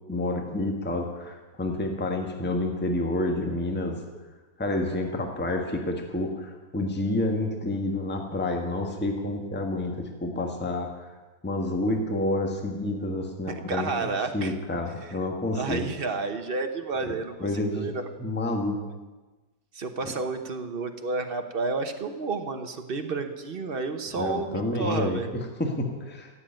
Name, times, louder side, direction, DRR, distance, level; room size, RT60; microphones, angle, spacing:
voice 1, 0.1-4.0 4.6-11.1 11.4-13.9 14.3-15.9 17.4-17.9 18.2-18.8 24.2-25.2 25.6-26.3, left 1 dB, 5° left, 3 dB, 1.4 m, -29 dB
voice 2, 13.5-14.6 15.0-15.2 15.5-17.5 17.7-18.1 19.7-25.3, right 4 dB, 40° right, 6 dB, 0.9 m, -31 dB
16.0 x 7.8 x 8.9 m, 1.2 s
omnidirectional pair, 2.1 m